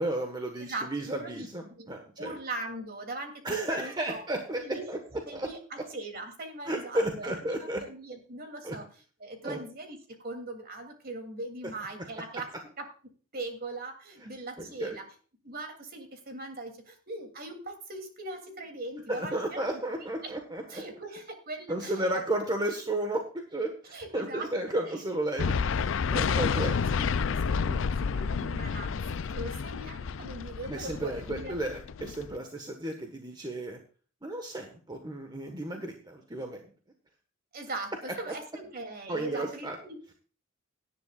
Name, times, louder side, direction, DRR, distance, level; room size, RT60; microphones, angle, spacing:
voice 1, 0.0-2.3 3.4-5.0 5.3-5.5 6.6-7.8 8.6-8.8 9.4-9.6 11.6-11.7 14.6-15.0 19.1-20.8 21.7-25.5 26.1-26.8 27.6-27.9 30.7-33.8 34.2-36.6 38.3-38.4 39.1-39.8, right 1 dB, 20° right, 4 dB, 1.4 m, -33 dB
voice 2, 0.6-1.5 1.8-1.9 2.2-4.2 4.6-5.0 5.2-8.9 9.2-12.5 12.8-12.9 13.3-15.1 15.4-19.6 20.2-20.4 20.7-22.2 23.9-24.5 24.8-24.9 26.1-28.9 29.2-31.5 37.5-40.0, right 2 dB, 45° right, 4 dB, 3.0 m, -40 dB
sound 1, 25.4-32.4, left 5 dB, 65° left, 0.4 m, -30 dB
18.0 x 10.5 x 2.5 m, 0.38 s
head